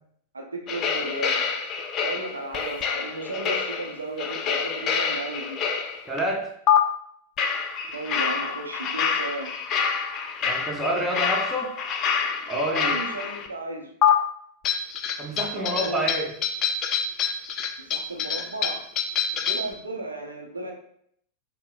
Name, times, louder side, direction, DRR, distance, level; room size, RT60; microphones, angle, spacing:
voice 1, 0.3-1.5 2.0-5.6 7.9-9.6 12.5-13.9 15.5-16.1 17.8-18.8 19.3-20.7, right 2 dB, 75° right, 3 dB, 0.5 m, -34 dB
sound 1, 0.7-6.2 6.7-6.8 7.4-13.5 14.0-14.1 14.6-19.7, left 7 dB, 30° left, 0.4 m, -26 dB
voice 2, 6.1-6.6 10.4-11.7 12.5-12.9 15.2-16.3, right 1 dB, 10° right, 0 dB, 0.7 m, -28 dB
5.4 x 2.0 x 2.3 m, 0.66 s
figure-of-eight pair, 90°, 0 cm